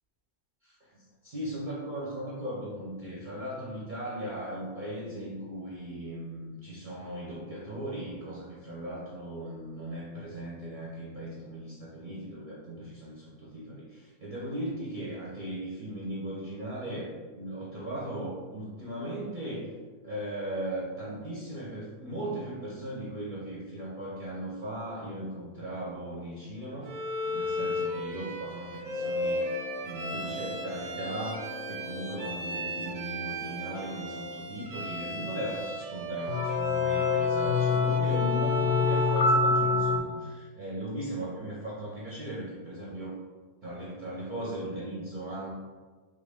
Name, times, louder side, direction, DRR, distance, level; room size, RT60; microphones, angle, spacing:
voice 1, 0.6-19.7 20.0-26.9 27.2-43.2 43.6-45.6, right 1 dB, 50° right, -7 dB, 0.6 m, -38 dB
Bowed string instrument, 26.8-39.4, left 2 dB, 90° right, 1.0 m, -35 dB
Brass instrument, 28.9-34.5, left 3 dB, 90° left, 1.0 m, -42 dB
sound 1, 36.3-40.0, left 3 dB, 70° left, 0.8 m, -25 dB
3.4 x 2.5 x 3.4 m, 1.5 s
omnidirectional pair, 1.4 m